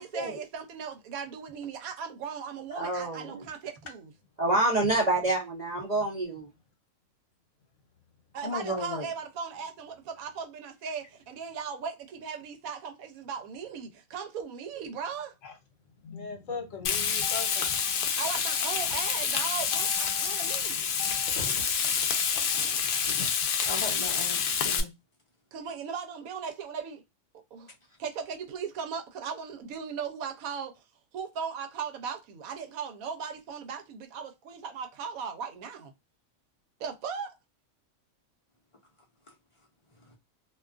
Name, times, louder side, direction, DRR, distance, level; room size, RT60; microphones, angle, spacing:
voice 1, 0.0-4.1 8.3-15.3 18.2-20.8 25.5-27.0 27.5-27.7 28.0-30.8 31.1-35.9 36.8-37.3, right 6 dB, 85° right, 1.1 m, -37 dB
voice 2, 2.8-3.4 4.4-6.5, right 2 dB, 45° right, 0.6 m, -27 dB
voice 3, 8.4-9.1 23.6-24.9, left 1 dB, 30° left, 0.6 m, -35 dB
voice 4, 16.0-18.2 18.5-19.2 19.5-21.6 22.3-23.3, left 6 dB, 70° left, 1.1 m, -42 dB
Frying (food), 16.8-24.8, left 7 dB, 90° left, 0.4 m, -28 dB
2.6 x 2.3 x 2.3 m
omnidirectional pair, 1.5 m